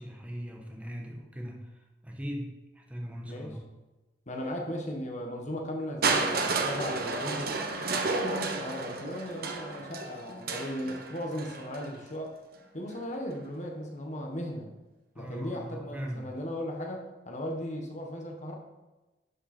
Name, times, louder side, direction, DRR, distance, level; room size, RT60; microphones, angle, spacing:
voice 1, 0.0-3.6 15.1-16.3, equal, 10° right, 0 dB, 1.1 m, -40 dB
voice 2, 4.3-7.5 7.9-12.4 12.7-14.7 15.1-18.5, equal, 45° left, 2 dB, 1.3 m, -37 dB
Crushing, 6.0-11.9 12.9-13.0, right 3 dB, 60° right, 1.0 m, -31 dB
11.0 x 5.6 x 4.3 m, 1.1 s
head